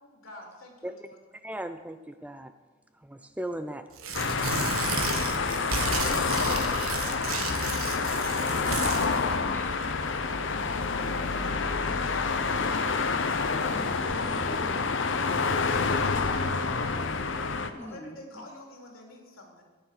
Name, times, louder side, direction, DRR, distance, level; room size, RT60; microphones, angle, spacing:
voice 1, 0.0-1.2 9.1-10.0 11.0-12.9 15.4-17.2 17.6-19.6, left 2 dB, 80° left, 0 dB, 3.2 m, -48 dB
voice 2, 1.4-2.5 3.0-3.9, right 1 dB, 5° right, 9 dB, 0.4 m, -37 dB
Tearing, 3.9-9.1, right 4 dB, 85° right, 1.5 m, -33 dB
sound 1, 4.1-17.7, left 4 dB, 60° left, 0.8 m, -28 dB
Domestic sounds home sounds, 4.8-15.9, right 1 dB, 20° right, 4.5 m, -55 dB
voice 3, 13.6-14.0 14.3-15.0 17.7-18.5, equal, 10° left, 4 dB, 0.8 m, -44 dB
14.0 x 9.4 x 5.9 m, 1.3 s
head